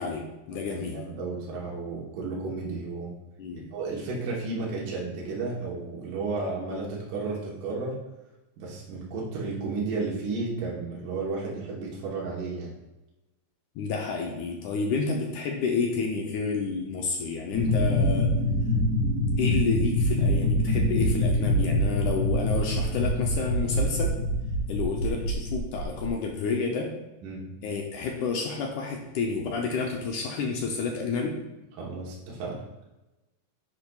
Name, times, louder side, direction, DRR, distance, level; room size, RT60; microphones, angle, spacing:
voice 1, 0.0-1.0 3.4-3.7 13.8-18.3 19.4-24.1 24.7-26.9 27.6-31.4, left 4 dB, 75° left, 0 dB, 1.9 m, -30 dB
voice 2, 0.7-3.1 3.7-8.0 8.6-12.7 27.2-27.5 31.8-32.6, right 3 dB, 70° right, -4 dB, 2.7 m, -33 dB
sound 1, 17.5-26.1, left 1 dB, 30° right, 2.6 m, -25 dB
10.5 x 4.9 x 2.3 m, 1.0 s
omnidirectional pair, 4.0 m